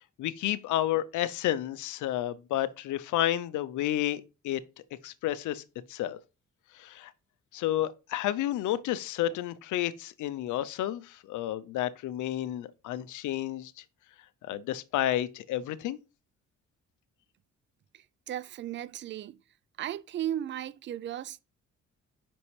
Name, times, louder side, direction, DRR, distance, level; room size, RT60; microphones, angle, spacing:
voice 1, 0.2-4.6 5.0-5.6 5.9-6.2 6.8-7.1 7.5-13.8 14.5-16.0, left 13 dB, 75° left, 0.6 m, -31 dB
voice 2, 17.9-19.4 19.8-21.4, right 11 dB, 40° right, 0.4 m, -36 dB
5.6 x 5.3 x 3.2 m
cardioid pair, 90°, 30 cm